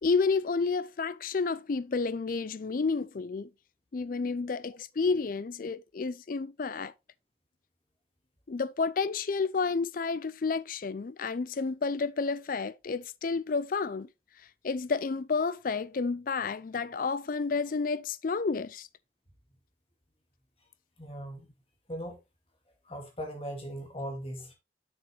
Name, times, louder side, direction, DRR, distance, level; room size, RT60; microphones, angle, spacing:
voice 1, 0.0-3.5 3.9-6.9 8.5-14.1 14.6-18.9, left 4 dB, 50° left, 0.4 m, -30 dB
voice 2, 21.0-21.5 21.9-22.2 22.8-24.5, equal, 30° left, 2.2 m, -39 dB
7.4 x 6.7 x 3.2 m
head